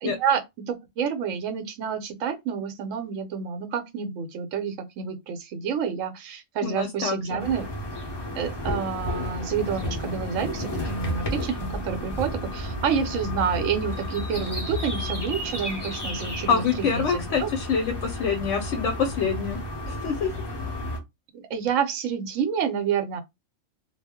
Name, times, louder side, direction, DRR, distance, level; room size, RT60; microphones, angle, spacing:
voice 1, 0.0-7.6 8.4-17.5 21.3-23.2, right 7 dB, 75° right, 1.0 m, -29 dB
voice 2, 6.6-7.4 16.5-19.6 19.9-20.3, left 6 dB, 70° left, 0.9 m, -26 dB
sound 1, 7.4-21.0, left 1 dB, 30° left, 0.5 m, -32 dB
2.3 x 2.0 x 3.4 m
omnidirectional pair, 1.4 m